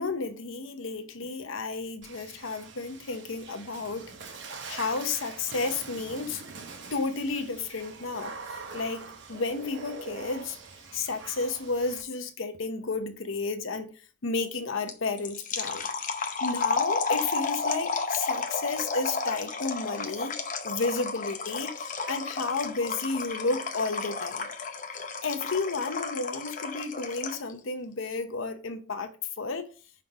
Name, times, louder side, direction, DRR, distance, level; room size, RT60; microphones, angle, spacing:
voice 1, 0.0-4.1 4.7-6.4 6.9-10.6 10.9-13.9 14.2-15.9 16.4-20.4 20.6-24.5 25.2-29.1 29.4-29.7, left 3 dB, 75° left, 0.8 m, -32 dB
Water / Splash splatter, 2.0-12.0, right 4 dB, 60° right, 0.9 m, -44 dB
sound 1, 14.9-27.5, left 4 dB, 40° left, 0.7 m, -32 dB
6.0 x 3.7 x 4.6 m
head